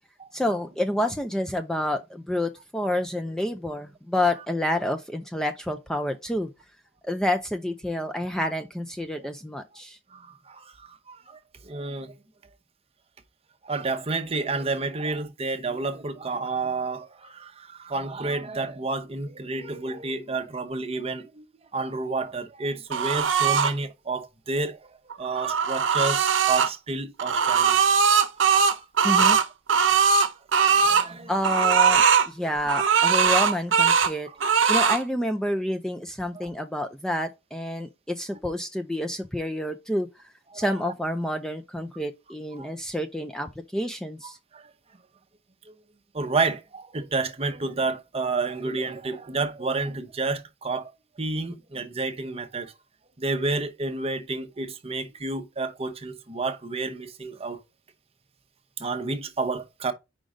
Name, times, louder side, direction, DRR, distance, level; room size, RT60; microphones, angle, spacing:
voice 1, 0.3-6.5 7.0-10.0 29.0-29.4 31.3-34.3 34.7-40.1 40.5-44.4, left 1 dB, 5° left, 0.4 m, -28 dB
voice 2, 10.1-12.2 13.6-21.4 21.7-27.8 28.3-28.5 28.8-29.4 30.6-31.3 36.3-36.5 40.5-40.7 42.6-42.7 44.2-44.6 45.7-45.8 46.1-50.9 51.2-52.7 53.2-57.6 58.8-59.9, right 3 dB, 30° right, 0.8 m, -30 dB
sound 1, 22.9-23.7 25.1-26.7 27.2-31.1 31.4-32.3 32.7-34.1 34.4-35.0, right 6 dB, 90° right, 0.7 m, -20 dB
5.1 x 3.8 x 4.9 m
head